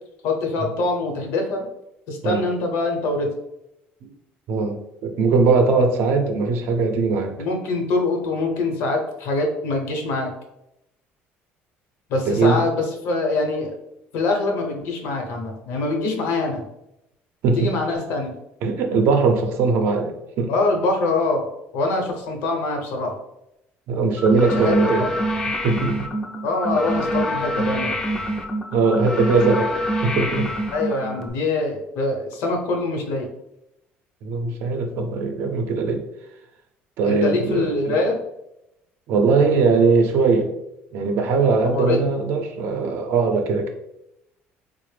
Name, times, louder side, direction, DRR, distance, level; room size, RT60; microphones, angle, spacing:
voice 1, 0.2-1.7 2.1-3.3 7.4-10.3 12.1-13.8 14.1-16.6 17.5-18.3 20.5-21.5 21.7-23.1 24.3-24.9 26.4-28.0 30.7-33.3 37.0-38.2 41.7-42.0, left 2 dB, 75° left, 2 dB, 0.8 m, -24 dB
voice 2, 4.5-7.3 12.3-12.6 17.4-17.7 18.6-20.5 23.9-25.1 25.6-26.1 28.7-30.5 34.2-36.0 37.0-38.0 39.1-40.5 40.9-43.7, right 4 dB, 60° right, 5 dB, 0.5 m, -20 dB
sound 1, 24.2-31.3, equal, 10° left, 0.4 m, -25 dB
4.0 x 2.0 x 3.2 m, 0.85 s
cardioid pair, 160°, 5 cm